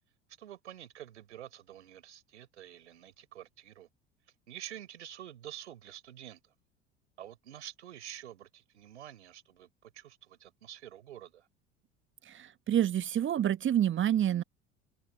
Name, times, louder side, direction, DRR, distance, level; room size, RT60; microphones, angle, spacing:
voice 1, 0.4-3.9 4.5-6.4 7.2-11.5, right 11 dB, 80° right, 4.7 m, -48 dB
voice 2, 12.3-14.4, right 10 dB, 35° right, 1.4 m, -28 dB
figure-of-eight pair, 65°, 34 cm